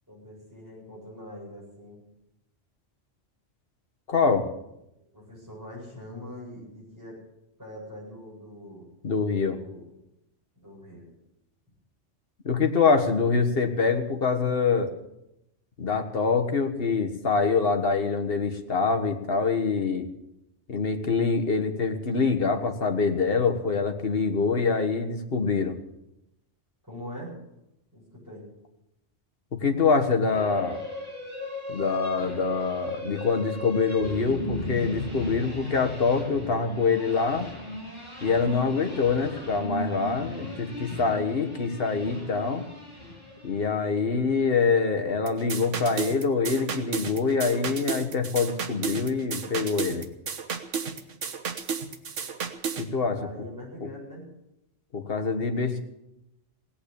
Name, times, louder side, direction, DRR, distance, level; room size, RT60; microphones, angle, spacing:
voice 1, 0.1-2.0 5.1-7.2 7.6-8.9 9.5-9.9 10.6-11.1 26.8-27.4 27.9-28.5 38.6-38.8 53.2-54.3, equal, 15° right, -5 dB, 7.9 m, -43 dB
voice 2, 4.1-4.5 9.0-9.6 12.4-14.9 15.8-20.1 20.7-25.8 29.5-30.8 31.7-37.5 38.2-42.6 43.4-50.0 52.8-53.2 53.8-53.9 54.9-55.8, left 4 dB, 55° left, 6 dB, 1.6 m, -25 dB
sound 1, 30.2-43.9, left 1 dB, 35° left, 8.2 m, -37 dB
sound 2, 45.3-52.9, right 6 dB, 90° right, 1.5 m, -33 dB
17.5 x 8.7 x 8.6 m, 0.86 s
omnidirectional pair, 1.2 m